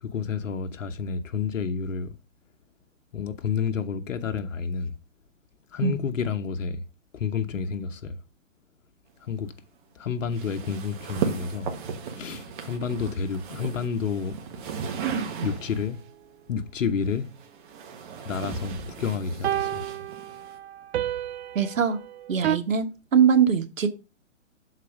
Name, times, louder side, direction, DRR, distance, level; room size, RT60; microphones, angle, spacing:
voice 1, 0.0-2.2 3.1-4.9 5.7-6.8 7.1-8.2 9.2-9.5 9.9-11.7 12.1-14.4 14.7-14.8 15.4-16.0 16.5-17.3 18.2-19.8, left 6 dB, 75° left, 1.0 m, -30 dB
sound 1, 10.3-16.0 17.0-20.6, right 6 dB, 40° right, 1.4 m, -35 dB
sound 2, 15.2-15.3 19.4-22.6, right 11 dB, 55° right, 0.5 m, -30 dB
voice 2, 21.5-22.0 22.3-23.9, right 7 dB, 80° right, 1.4 m, -22 dB
6.8 x 4.1 x 4.9 m
hypercardioid pair, 135°, 39 cm